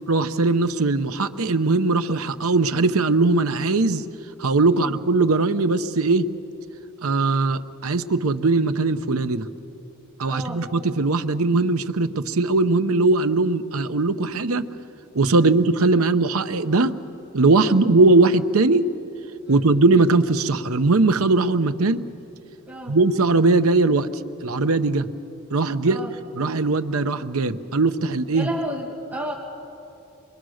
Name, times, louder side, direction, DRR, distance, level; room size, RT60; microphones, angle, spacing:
voice 1, 0.1-4.0 4.4-6.3 7.0-9.5 10.2-14.6 15.1-17.0 17.3-18.9 19.5-22.1 22.9-24.1 24.4-25.1 25.5-26.0 26.3-28.5, right 3 dB, 75° right, 10 dB, 0.8 m, -20 dB
voice 2, 10.2-10.7 15.3-15.5 17.7-17.9 19.5-19.7 22.7-23.0 25.9-26.1 28.3-29.3, equal, 10° right, -3 dB, 2.3 m, -32 dB
26.5 x 22.5 x 6.4 m, 2.8 s
head